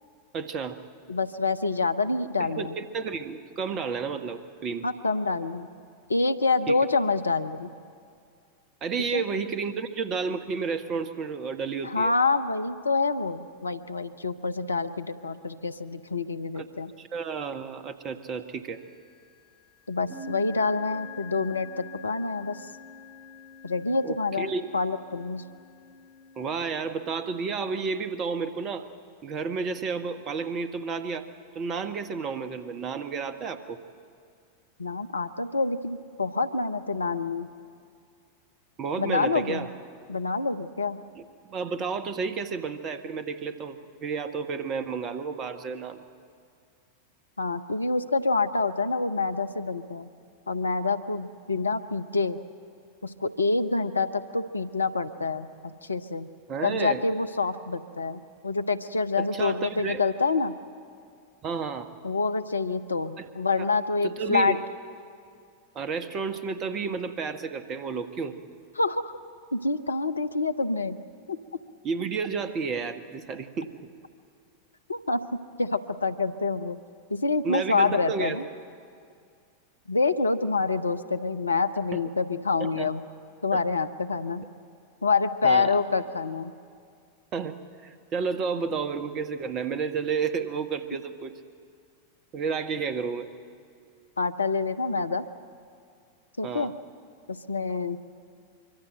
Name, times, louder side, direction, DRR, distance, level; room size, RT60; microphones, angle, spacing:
voice 1, 0.3-0.8 2.4-4.8 6.7-6.8 8.8-12.1 16.5-16.7 17.0-18.8 24.0-24.6 26.4-28.9 29.2-31.3 31.5-33.8 38.8-39.7 41.1-46.0 56.5-57.0 59.2-60.0 61.4-61.9 63.2-63.3 63.6-63.7 64.0-64.6 65.7-68.3 71.8-73.7 77.4-78.4 81.9-82.0 82.6-82.9 85.4-85.7 87.3-87.5 87.8-91.3 92.3-93.3 96.4-96.7, right 5 dB, 30° right, 10 dB, 1.4 m, -31 dB
voice 2, 1.1-2.7 4.8-5.7 6.1-7.7 9.1-9.2 11.8-16.9 19.9-22.7 23.6-24.5 24.7-25.4 34.8-37.5 39.0-39.7 40.1-41.0 47.4-50.1 50.5-52.4 53.0-56.3 56.6-60.6 62.0-64.6 68.8-69.2 69.5-71.0 71.3-71.4 74.9-76.8 77.1-78.4 79.9-83.0 83.4-84.5 85.0-86.5 94.2-95.2 96.4-96.7 97.3-98.0, left 4 dB, 80° left, 11 dB, 0.8 m, -27 dB
sound 1, 18.7-19.2 20.1-27.2, left 4 dB, 10° right, 4.1 m, -46 dB
24.5 x 24.0 x 7.9 m, 2.3 s
figure-of-eight pair, 90°, 0 cm